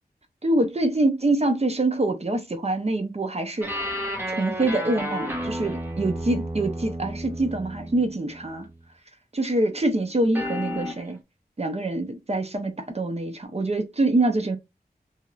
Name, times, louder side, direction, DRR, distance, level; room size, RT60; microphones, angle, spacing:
voice 1, 0.4-3.9 4.3-8.7 9.3-11.2 11.6-14.6, right 2 dB, 40° right, 0.6 m, -25 dB
sound 1, 3.6-8.8 10.3-11.0, equal, 15° right, 0.9 m, -32 dB
2.9 x 2.8 x 2.4 m
wide cardioid pair, 70°, 16 cm